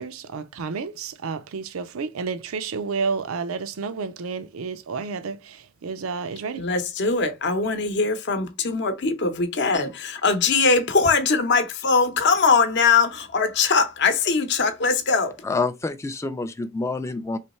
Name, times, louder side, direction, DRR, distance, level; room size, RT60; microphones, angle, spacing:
voice 1, 0.0-6.7, right 5 dB, 85° right, 0.5 m, -31 dB
voice 2, 6.6-15.3, left 4 dB, 55° left, 0.7 m, -21 dB
voice 3, 15.4-17.4, left 3 dB, 15° left, 0.3 m, -27 dB
3.3 x 3.1 x 4.1 m
head